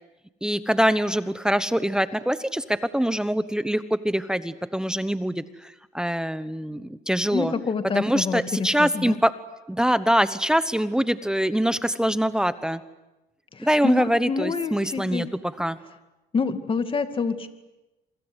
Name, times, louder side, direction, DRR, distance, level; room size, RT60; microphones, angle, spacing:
voice 1, 0.4-7.5 7.9-9.3 9.7-12.8 13.6-15.3 15.6-15.8, equal, 5° right, 13 dB, 1.1 m, -24 dB
voice 2, 7.3-9.2 13.5-15.3 16.3-17.5, left 5 dB, 30° left, 9 dB, 2.3 m, -27 dB
27.5 x 24.5 x 8.2 m, 1.0 s
cardioid pair, 110°, 17 cm